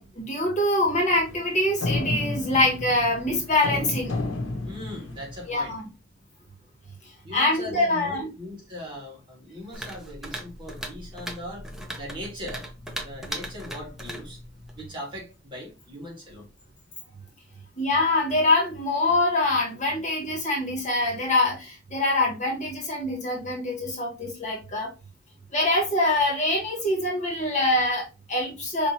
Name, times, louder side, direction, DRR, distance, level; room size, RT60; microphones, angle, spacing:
voice 1, 0.0-4.1 5.5-5.9 7.0-8.3 17.8-24.9 25.5-28.9, left 2 dB, 40° left, 1.7 m, -24 dB
sound 1, 0.8-5.7, left 2 dB, 90° left, 0.9 m, -32 dB
voice 2, 4.6-5.8 7.2-11.7 12.0-12.7 13.0-14.4 14.7-16.5, left 1 dB, 25° right, 1.9 m, -39 dB
sound 2, 9.7-14.9, right 1 dB, ahead, 0.7 m, -38 dB
5.2 x 2.9 x 2.9 m
head